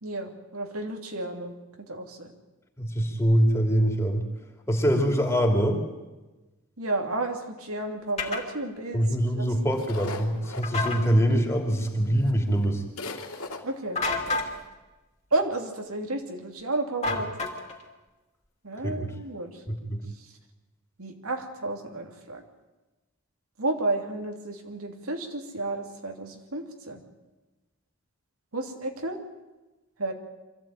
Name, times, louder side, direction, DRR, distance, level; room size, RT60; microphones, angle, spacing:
voice 1, 0.0-1.5 1.9-2.3 6.8-9.1 9.3-9.5 13.6-14.0 15.3-17.5 18.6-19.5 21.0-22.4 23.6-27.0 28.5-29.2 30.0-30.1, right 2 dB, 90° right, 3 dB, 2.9 m, -31 dB
voice 2, 2.8-4.2 4.7-5.8 8.9-12.8 18.8-19.1 19.7-20.0, equal, 15° left, 2 dB, 2.8 m, -24 dB
sound 1, 8.2-8.4 10.6-11.0 13.9-14.5 17.0-17.8, left 3 dB, 30° left, 2.8 m, -29 dB
sound 2, 9.7-11.6 12.3-12.4 12.6-12.7 13.0-13.6, left 2 dB, 90° left, 2.6 m, -38 dB
24.5 x 15.5 x 9.0 m, 1.1 s
head